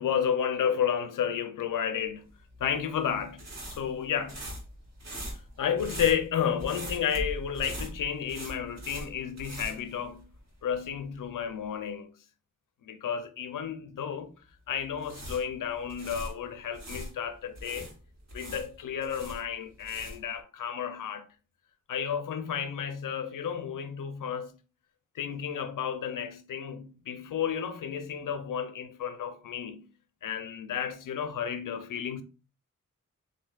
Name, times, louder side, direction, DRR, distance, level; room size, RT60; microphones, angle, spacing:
voice 1, 0.0-2.3 2.6-3.4 3.7-4.4 5.3-10.2 10.6-12.1 12.8-14.3 14.7-17.9 18.3-21.3 21.9-24.5 25.1-29.8 30.2-32.2, left 8 dB, 90° left, 0.5 m, -32 dB
sound 1, 2.5-10.6 10.9-11.0 14.8-17.1 17.6-20.4, equal, 60° right, 1.9 m, -41 dB
7.6 x 2.7 x 2.3 m
wide cardioid pair, 155°, 31 cm